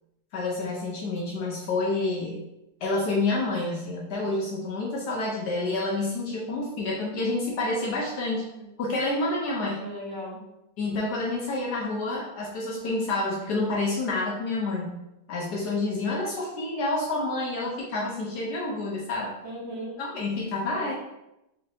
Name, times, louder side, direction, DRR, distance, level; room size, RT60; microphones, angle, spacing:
voice 1, 0.3-2.4 2.8-8.4 8.8-9.8 10.8-14.9 15.3-19.3 20.0-20.9, left 2 dB, 70° left, -2 dB, 1.0 m, -28 dB
voice 2, 9.8-10.4 19.4-20.0 20.5-20.9, equal, 80° right, -4 dB, 1.9 m, -38 dB
4.0 x 3.1 x 2.7 m, 0.89 s
omnidirectional pair, 2.1 m